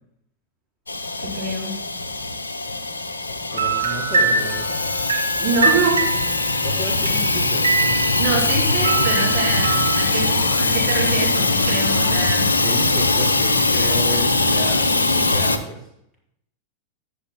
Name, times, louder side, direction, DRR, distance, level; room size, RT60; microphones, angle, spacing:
Hiss / Toilet flush / Trickle dribble, 0.9-15.6, left 3 dB, 75° left, 0.8 m, -21 dB
voice 1, 1.2-1.8 5.4-6.1 8.2-12.6, right 3 dB, 50° right, -3 dB, 3.8 m, -25 dB
voice 2, 3.5-4.7 6.6-7.7 12.6-15.8, equal, 5° right, -5 dB, 4.4 m, -31 dB
sound 1, 3.5-8.5 8.8-10.1, right 4 dB, 75° right, 1.5 m, -24 dB
sound 2, 4.4-15.2, left 5 dB, 20° left, 4.1 m, -43 dB
14.5 x 10.5 x 2.2 m, 0.76 s
figure-of-eight pair, 90°, 0 cm